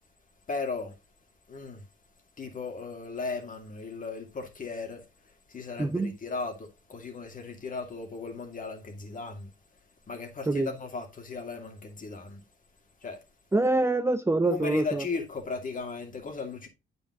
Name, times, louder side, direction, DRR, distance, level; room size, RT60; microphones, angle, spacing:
voice 1, 0.5-1.0 1.5-1.8 2.4-5.0 5.5-9.5 10.1-12.4 13.0-13.2 14.4-16.7, left 4 dB, 40° left, 2.5 m, -36 dB
voice 2, 5.8-6.1 10.5-10.7 13.5-15.0, right 2 dB, 15° right, 0.7 m, -25 dB
8.8 x 5.4 x 3.7 m
cardioid pair, 90°, 20 cm